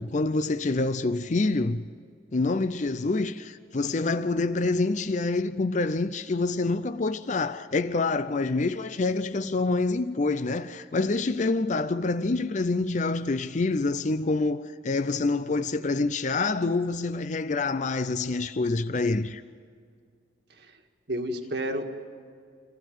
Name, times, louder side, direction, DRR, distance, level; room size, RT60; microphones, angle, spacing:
voice 1, 0.0-1.8 2.3-19.4, left 3 dB, 40° left, 0.5 m, -26 dB
voice 2, 21.1-21.8, right 1 dB, 60° right, 1.8 m, -31 dB
26.5 x 15.5 x 9.1 m
head